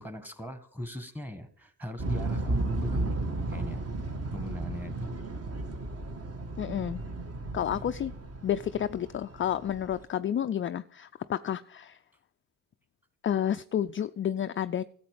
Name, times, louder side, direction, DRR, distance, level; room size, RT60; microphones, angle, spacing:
voice 1, 0.0-3.2 3.5-3.9 4.3-5.2, left 1 dB, 5° right, 1.6 m, -40 dB
sound 1, 2.0-10.0, right 2 dB, 35° right, 1.6 m, -34 dB
voice 2, 6.6-7.0 7.5-8.1 8.4-12.0 13.2-14.8, left 10 dB, 30° left, 0.4 m, -30 dB
13.0 x 7.8 x 5.1 m
cardioid pair, 75°, 41 cm